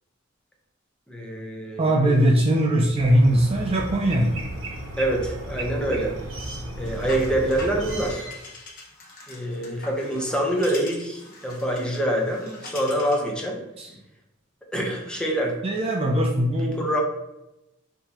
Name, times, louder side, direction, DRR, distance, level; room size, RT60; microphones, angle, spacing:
voice 1, 1.1-2.4 5.0-6.2 6.8-8.3 9.3-13.6 14.7-15.5 16.6-17.0, right 1 dB, 5° left, -1 dB, 0.7 m, -26 dB
voice 2, 1.8-4.4 13.8-13.9 15.6-17.0, right 1 dB, 30° right, 0 dB, 0.4 m, -21 dB
sound 1, 3.0-8.1, right 1 dB, 75° right, 0.8 m, -34 dB
sound 2, 6.8-13.3, left 2 dB, 45° left, 0.9 m, -42 dB
5.5 x 2.8 x 2.9 m, 0.93 s
head